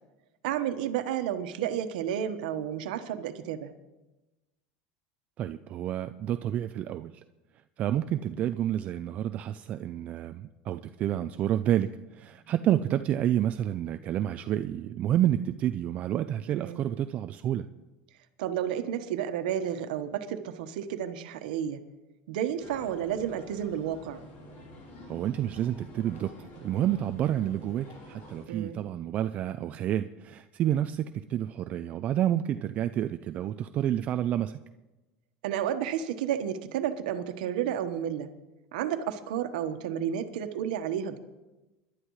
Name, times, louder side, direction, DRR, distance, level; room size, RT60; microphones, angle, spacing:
voice 1, 0.4-3.7 16.5-16.8 18.4-21.8 22.3-24.2 28.5-28.8 35.4-38.3 38.7-41.2, right 9 dB, 90° right, 8 dB, 1.2 m, -31 dB
voice 2, 5.4-7.2 7.8-17.7 25.1-34.6, right 11 dB, 35° right, 10 dB, 0.4 m, -29 dB
sound 1, 22.6-28.4, left 1 dB, 45° left, 3.9 m, -49 dB
26.0 x 11.5 x 3.2 m, 1.1 s
cardioid pair, 160°, 4 cm